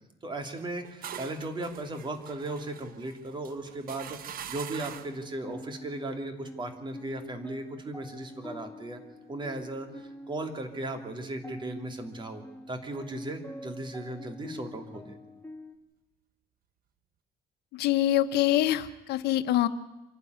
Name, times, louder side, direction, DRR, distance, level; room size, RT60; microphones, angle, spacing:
voice 1, 0.2-9.0 9.3-12.4 12.7-15.2, right 2 dB, 30° right, 5 dB, 3.2 m, -37 dB
sound 1, 0.6-5.3, right 9 dB, 60° right, 1.2 m, -44 dB
sound 2, 4.9-15.8, equal, 10° left, 1.9 m, -46 dB
voice 2, 17.7-19.7, left 13 dB, 75° left, 11 dB, 1.1 m, -25 dB
26.5 x 12.0 x 9.6 m, 1.0 s
cardioid pair, 110°, 17 cm